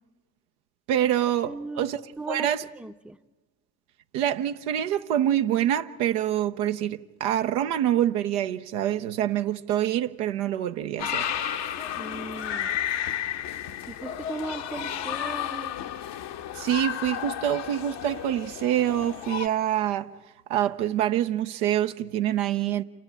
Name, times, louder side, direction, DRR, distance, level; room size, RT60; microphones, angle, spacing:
voice 1, 0.9-1.5 1.8-2.0 2.3-2.6 4.1-11.3 16.6-20.1 20.5-22.8, right 11 dB, 75° right, 0.8 m, -26 dB
voice 2, 1.5-1.9 2.2-2.5 2.8-3.2 12.0-12.7 13.9-15.8, right 2 dB, ahead, 0.7 m, -37 dB
sound 1, 11.0-19.5, left 10 dB, 65° left, 1.0 m, -32 dB
28.0 x 10.5 x 8.8 m
hypercardioid pair, 40°, 46 cm